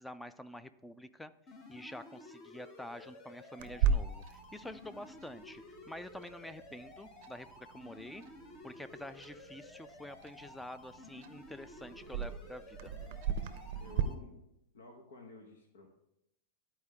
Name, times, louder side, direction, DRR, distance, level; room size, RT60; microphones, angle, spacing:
voice 1, 0.0-1.3 1.7-8.2 8.6-12.9, left 1 dB, 5° left, 13 dB, 0.3 m, -48 dB
sound 1, 1.5-14.1, left 2 dB, 30° left, 0.9 m, -53 dB
Clock, 3.6-14.0, right 7 dB, 55° right, 0.5 m, -38 dB
voice 2, 13.8-14.4 14.7-15.9, left 3 dB, 85° left, 0 dB, 1.1 m, -52 dB
11.5 x 4.4 x 3.6 m, 0.82 s
supercardioid pair, 145°, 0 cm